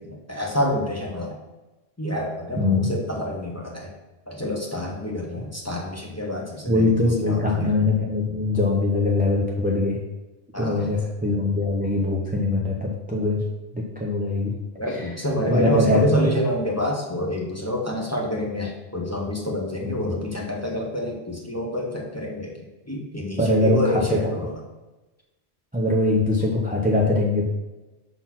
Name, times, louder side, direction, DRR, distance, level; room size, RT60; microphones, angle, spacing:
voice 1, 0.0-1.4 2.0-3.9 4.3-7.7 8.0-8.1 10.5-10.8 14.8-22.6 22.8-24.5, left 1 dB, 15° left, -1 dB, 0.9 m, -27 dB
voice 2, 2.6-2.9 6.7-10.0 10.6-13.4 13.7-14.5 14.9-15.1 15.5-16.3 19.8-20.3 23.4-24.5 25.7-27.4, left 2 dB, 10° right, -2 dB, 0.7 m, -22 dB
5.8 x 4.2 x 5.9 m, 1.1 s
omnidirectional pair, 1.2 m